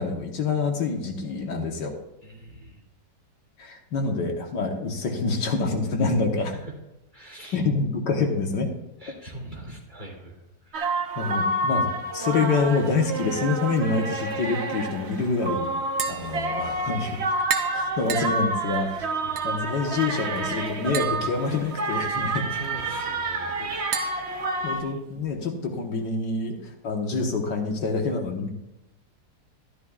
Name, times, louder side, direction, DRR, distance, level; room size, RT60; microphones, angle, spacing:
voice 1, 0.0-1.9 3.6-6.5 7.5-8.7 11.2-15.7 16.1-17.2 17.7-18.9 19.4-22.5 24.6-28.5, left 4 dB, 70° left, 3 dB, 1.8 m, -26 dB
voice 2, 2.2-2.8 6.5-6.7 7.1-7.6 9.0-11.0 16.0-16.2 19.2-19.4 22.5-24.1 24.5-24.9, right 1 dB, 25° right, -3 dB, 3.0 m, -43 dB
sound 1, 10.7-24.8, right 2 dB, 45° right, 1.0 m, -29 dB
Tap, 15.8-25.3, right 7 dB, 65° right, 1.4 m, -37 dB
13.0 x 12.5 x 2.4 m, 0.92 s
omnidirectional pair, 2.0 m